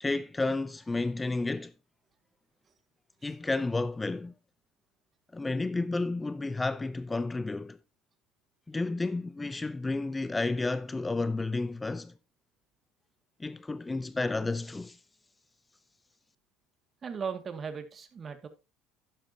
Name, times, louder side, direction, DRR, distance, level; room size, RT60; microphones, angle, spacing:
voice 1, 0.0-1.7 3.2-4.3 5.3-7.8 8.7-12.1 13.4-15.0, left 3 dB, 15° left, 0.6 m, -31 dB
voice 2, 17.0-18.5, right 6 dB, 35° right, 2.1 m, -37 dB
12.0 x 10.0 x 2.8 m
hypercardioid pair, 75°, 0 cm